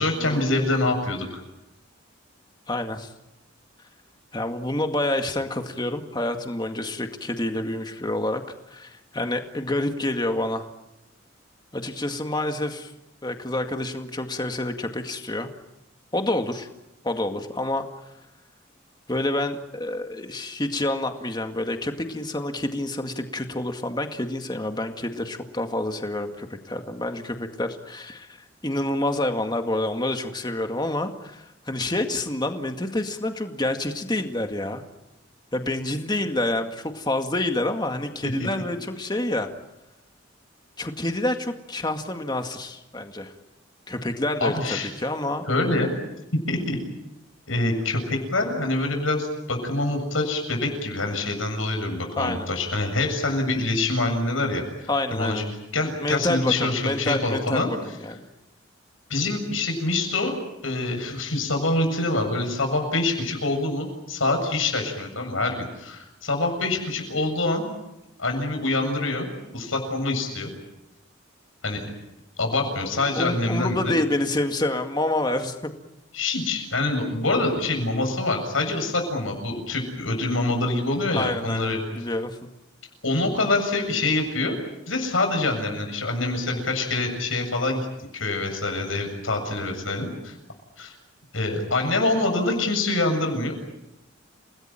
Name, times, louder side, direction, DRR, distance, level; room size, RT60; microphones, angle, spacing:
voice 1, 0.0-1.4 38.2-38.5 44.4-44.9 45.5-45.9 46.5-46.8 47.5-55.4 55.7-57.7 59.1-67.7 68.2-70.5 71.6-71.8 72.4-74.0 76.1-81.8 83.0-84.6 84.9-87.9 88.1-90.3 90.8-90.9 91.3-93.5, left 2 dB, 85° left, 4 dB, 7.5 m, -25 dB
voice 2, 2.7-3.1 4.3-8.4 8.7-10.7 11.7-12.9 13.2-15.5 16.1-16.7 17.0-18.0 19.1-34.8 35.5-39.5 40.8-43.3 43.9-45.5 52.2-52.5 54.9-55.4 56.0-58.3 72.9-75.7 81.1-82.4, left 1 dB, 20° left, 5 dB, 2.0 m, -28 dB
30.0 x 19.0 x 9.1 m, 0.92 s
head